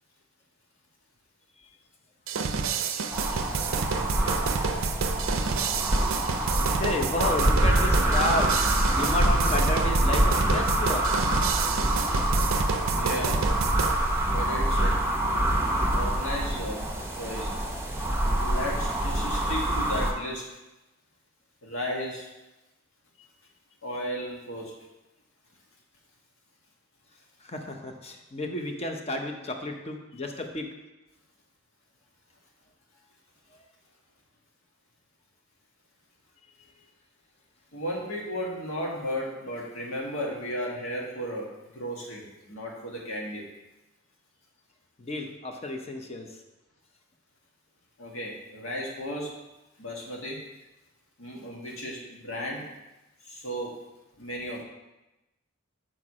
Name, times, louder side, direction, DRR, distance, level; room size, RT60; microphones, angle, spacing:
sound 1, 2.3-14.0, right 5 dB, 75° right, 0.5 m, -29 dB
sound 2, 3.1-20.1, right 1 dB, 10° right, 0.7 m, -26 dB
voice 1, 5.4-5.8 6.8-8.6 8.9-11.1 27.4-30.7 33.5-33.6 36.6-36.7 45.0-46.4, left 2 dB, 30° left, 4 dB, 0.7 m, -32 dB
voice 2, 12.9-13.5 14.2-15.0 15.9-16.9 17.2-17.5 18.3-20.5 21.6-22.3 23.8-24.8 37.7-43.4 48.0-49.3 49.8-50.4 51.2-52.7 53.2-53.8 54.2-54.6, equal, 80° left, -2 dB, 1.6 m, -34 dB
6.1 x 4.6 x 4.8 m, 1.0 s
head